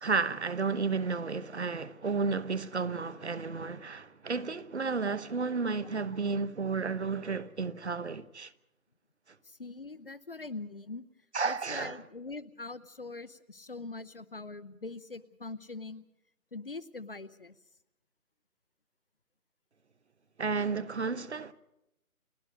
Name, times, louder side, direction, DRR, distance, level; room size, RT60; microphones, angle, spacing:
voice 1, 0.0-8.5 11.3-12.0 20.4-21.5, right 4 dB, 50° right, 1.0 m, -32 dB
voice 2, 9.4-11.0 11.4-16.1 16.5-17.6, left 3 dB, 40° left, 0.7 m, -43 dB
30.0 x 10.0 x 9.3 m
figure-of-eight pair, 155°, 43 cm